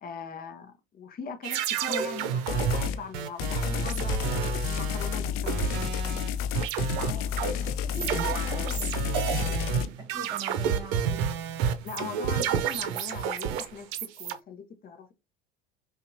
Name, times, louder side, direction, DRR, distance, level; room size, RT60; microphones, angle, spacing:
voice 1, 0.0-5.7 11.8-15.1, left 6 dB, 30° left, 0.8 m, -41 dB
sound 1, 1.4-6.3 6.5-14.3, right 8 dB, 60° right, 0.7 m, -30 dB
sound 2, 2.5-3.0 3.4-9.9, left 8 dB, 45° left, 0.5 m, -30 dB
voice 2, 7.0-11.3, right 2 dB, 15° right, 2.0 m, -43 dB
5.5 x 2.5 x 2.7 m
hypercardioid pair, 75°, 30 cm